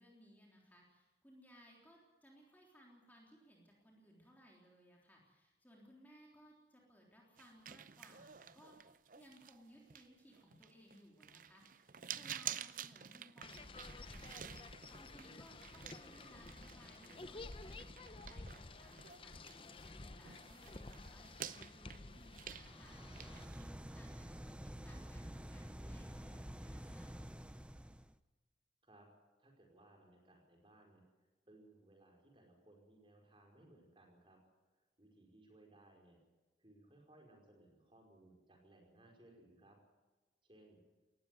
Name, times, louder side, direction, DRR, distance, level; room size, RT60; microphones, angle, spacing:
voice 1, 0.0-8.8 9.1-27.3, equal, 10° left, -2 dB, 3.5 m, -63 dB
sound 1, 7.4-20.0 20.2-23.7, right 10 dB, 50° right, 0.6 m, -51 dB
sound 2, 13.4-23.5, left 2 dB, 30° left, 0.8 m, -52 dB
sound 3, 22.5-28.2, equal, 5° right, 0.6 m, -49 dB
voice 2, 29.4-34.4 35.0-36.2 36.6-39.8 40.4-40.8, right 1 dB, 30° right, 1 dB, 5.1 m, -64 dB
19.0 x 15.0 x 9.3 m, 1.2 s
head